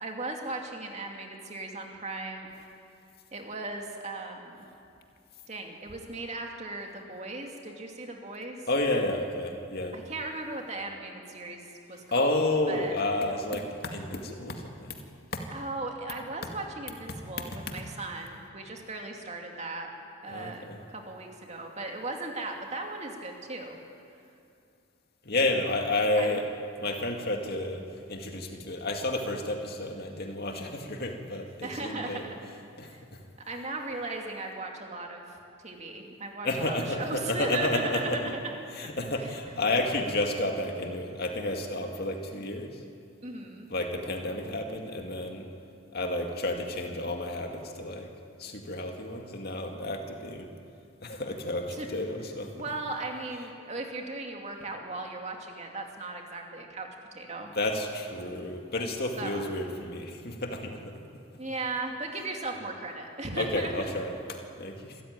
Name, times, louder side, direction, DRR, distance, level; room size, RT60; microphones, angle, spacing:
voice 1, 0.0-2.7 3.3-4.6 5.5-8.6 9.9-11.6 11.9-13.0 15.5-19.9 20.2-23.8 26.2-26.4 31.6-32.3 32.8-33.0 33.5-35.2 35.6-38.6 39.2-39.4 43.2-43.7 51.7-51.9 52.5-56.9 57.1-57.5 59.2-59.5 61.4-63.7, right 2 dB, 30° right, 2 dB, 2.5 m, -37 dB
voice 2, 8.7-10.0 12.1-15.0 15.3-15.4 20.3-20.8 25.2-26.5 26.8-27.8 28.1-32.2 32.8-32.9 36.4-38.2 38.8-42.7 43.7-45.5 45.9-48.1 48.4-50.5 51.0-52.5 57.5-60.8 63.4-65.0, left 2 dB, 50° left, 3 dB, 2.2 m, -31 dB
26.5 x 14.5 x 9.7 m, 2.5 s
head